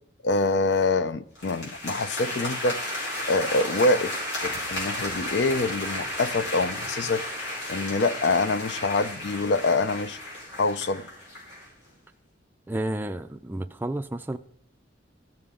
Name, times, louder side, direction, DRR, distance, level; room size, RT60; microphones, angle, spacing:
voice 1, 0.2-2.8 3.3-7.2 7.7-10.2 10.6-11.1, left 3 dB, 70° left, 0.5 m, -25 dB
sound 1, 1.3-11.7, left 1 dB, 85° left, 4.0 m, -33 dB
voice 2, 12.7-14.4, right 1 dB, 10° right, 0.4 m, -31 dB
16.0 x 6.9 x 3.7 m
head